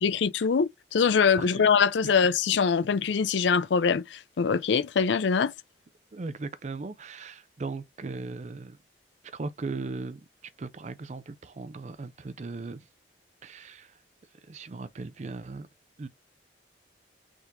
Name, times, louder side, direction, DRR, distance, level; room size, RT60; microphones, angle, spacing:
voice 1, 0.0-5.5, left 6 dB, 80° left, 0.4 m, -23 dB
voice 2, 6.1-8.8 9.3-10.2 10.6-12.8 13.4-13.9 14.5-15.7 16.0-16.1, right 3 dB, 40° right, 0.4 m, -38 dB
4.5 x 3.7 x 2.6 m
head